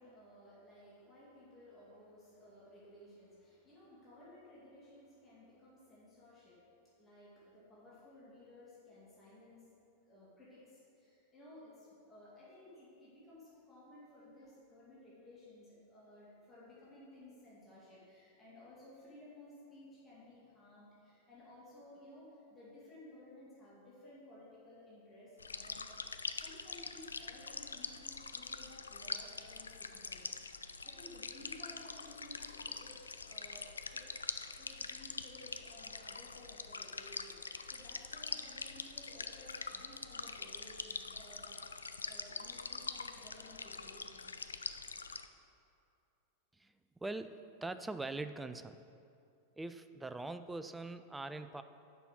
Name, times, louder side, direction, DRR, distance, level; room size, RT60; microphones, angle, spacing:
voice 1, 0.0-30.3 30.8-34.0 34.6-41.6 42.0-44.5 45.1-45.5, left 1 dB, 15° left, -8 dB, 2.1 m, -57 dB
sound 1, 25.4-45.3, left 4 dB, 75° left, 0.3 m, -44 dB
voice 2, 47.0-48.8 49.6-51.6, right 2 dB, 10° right, 10 dB, 0.3 m, -42 dB
6.9 x 5.7 x 6.2 m, 2.5 s
figure-of-eight pair, 90°, 0 cm